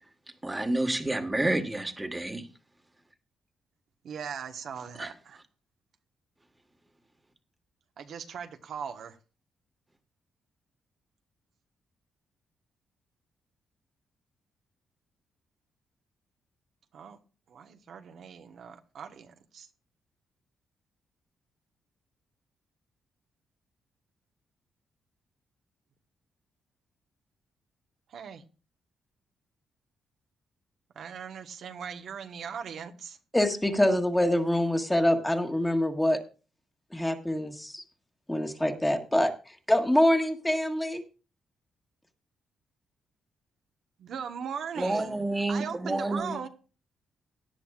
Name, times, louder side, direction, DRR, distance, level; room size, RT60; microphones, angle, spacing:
voice 1, 0.4-2.4 5.0-5.1 44.8-46.4, right 2 dB, 10° right, 1.5 m, -29 dB
voice 2, 4.0-5.4 8.0-9.2 16.9-17.2 17.5-19.7 28.1-28.4 30.9-33.2 44.0-46.5, right 7 dB, 65° right, 1.2 m, -39 dB
voice 3, 33.3-36.2 36.9-37.8 38.3-41.0, left 1 dB, 10° left, 1.5 m, -25 dB
17.5 x 10.5 x 2.4 m
cardioid pair, 115°, 0 cm